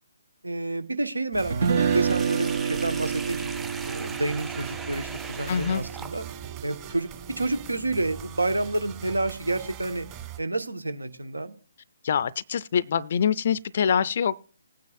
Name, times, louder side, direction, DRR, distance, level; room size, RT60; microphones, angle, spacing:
voice 1, 0.4-3.5 3.9-6.3 6.6-10.1 10.4-11.6, right 2 dB, 80° right, 1.4 m, -29 dB
sound 1, 1.3-10.4, right 9 dB, 20° right, 1.7 m, -42 dB
Guitar, 1.5-7.6, right 6 dB, 50° right, 0.7 m, -29 dB
Sink (filling or washing), 1.6-6.5, right 4 dB, 5° right, 0.7 m, -40 dB
voice 2, 5.5-5.8 12.0-14.4, left 7 dB, 45° left, 0.4 m, -24 dB
20.0 x 9.4 x 2.5 m
figure-of-eight pair, 135°, 0 cm